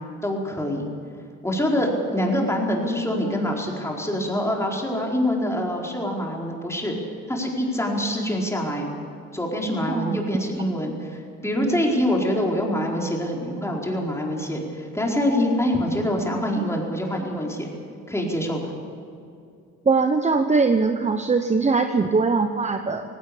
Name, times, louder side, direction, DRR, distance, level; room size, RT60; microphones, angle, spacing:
voice 1, 0.2-0.9 1.4-7.0 7.3-8.8 9.3-17.7 18.1-18.6, left 1 dB, 10° left, -1 dB, 4.4 m, -25 dB
voice 2, 9.9-10.2 19.8-23.0, right 4 dB, 25° right, 7 dB, 1.0 m, -21 dB
18.0 x 17.0 x 8.5 m, 2.5 s
cardioid pair, 90°, 30 cm